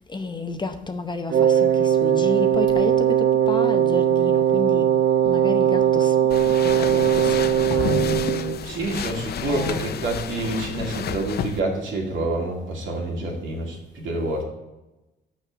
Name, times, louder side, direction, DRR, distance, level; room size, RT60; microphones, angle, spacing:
voice 1, 0.0-4.9 5.2-6.2 6.5-8.9 9.5-9.9, left 3 dB, 20° left, 0.8 m, -31 dB
Wind instrument woodwind instrument, 1.3-8.6, right 9 dB, 50° right, 0.5 m, -19 dB
sound 1, 6.3-11.6, left 9 dB, 55° left, 0.5 m, -30 dB
voice 2, 8.6-14.4, right 2 dB, 75° right, 2.4 m, -28 dB
5.9 x 5.6 x 6.7 m
cardioid pair, 90°, 20 cm